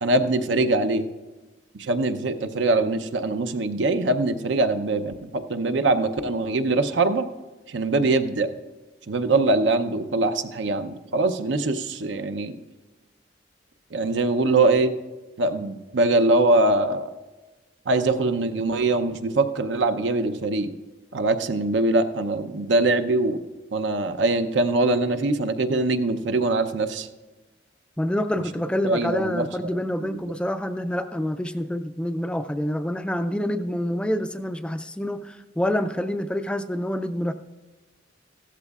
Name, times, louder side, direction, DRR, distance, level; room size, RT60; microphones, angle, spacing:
voice 1, 0.0-1.1 1.8-7.3 7.7-8.5 9.1-12.5 13.9-14.9 15.4-17.1 17.9-20.7 21.1-23.4 23.7-27.1 28.8-29.7 30.0-30.2, right 2 dB, 80° right, 9 dB, 0.7 m, -23 dB
voice 2, 28.0-37.3, left 1 dB, 5° left, 9 dB, 0.3 m, -27 dB
15.5 x 13.5 x 2.4 m, 1.2 s
head